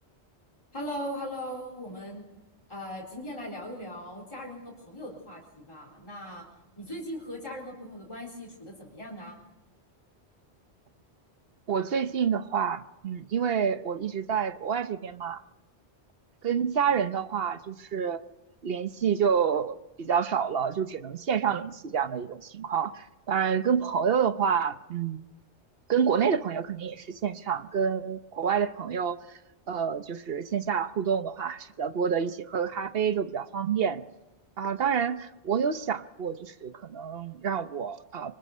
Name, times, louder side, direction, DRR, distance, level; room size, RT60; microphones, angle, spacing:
voice 1, 0.7-2.3 2.7-6.4 6.8-9.4, equal, 25° left, -4 dB, 4.2 m, -39 dB
voice 2, 11.7-15.4 16.4-18.2 18.6-25.2 25.9-29.2 29.7-34.0 34.6-38.3, right 7 dB, 60° right, 11 dB, 1.0 m, -28 dB
25.0 x 20.0 x 5.5 m, 0.99 s
omnidirectional pair, 1.2 m